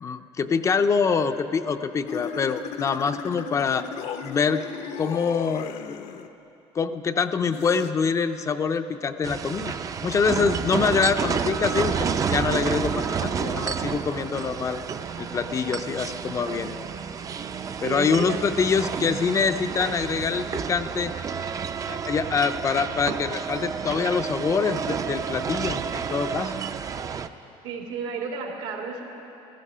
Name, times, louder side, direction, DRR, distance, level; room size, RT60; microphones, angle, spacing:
voice 1, 0.0-3.9 4.2-4.6 5.0-6.0 6.7-9.7 10.0-14.8 15.2-16.9 17.8-21.1 21.9-26.5, left 5 dB, 25° left, 9 dB, 0.4 m, -25 dB
sound 1, 2.1-6.3 7.5-7.9, left 8 dB, 65° left, 0.7 m, -35 dB
sound 2, 9.2-27.3, right 6 dB, 30° right, 0.4 m, -30 dB
voice 2, 17.8-18.4 27.6-29.0, right 5 dB, 85° right, 1 dB, 2.4 m, -32 dB
15.5 x 14.0 x 5.6 m, 3.0 s
cardioid pair, 145°, 12 cm